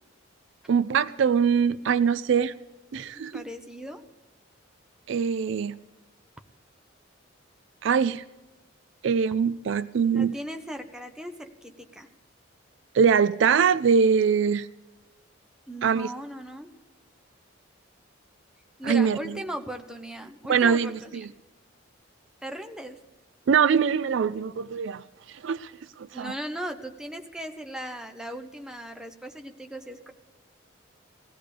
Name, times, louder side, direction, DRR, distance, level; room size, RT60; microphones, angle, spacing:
voice 1, 0.7-2.5 2.9-3.4 5.1-5.8 7.8-8.2 9.0-10.3 12.9-14.7 15.8-16.1 18.8-19.2 20.5-21.0 23.5-25.7 26.0-26.3, right 6 dB, 65° right, 17 dB, 0.4 m, -23 dB
voice 2, 3.2-4.0 10.1-12.1 15.7-16.7 18.8-21.3 22.4-23.0 26.1-30.1, equal, 5° right, 5 dB, 0.7 m, -38 dB
20.5 x 16.0 x 3.3 m, 1.2 s
head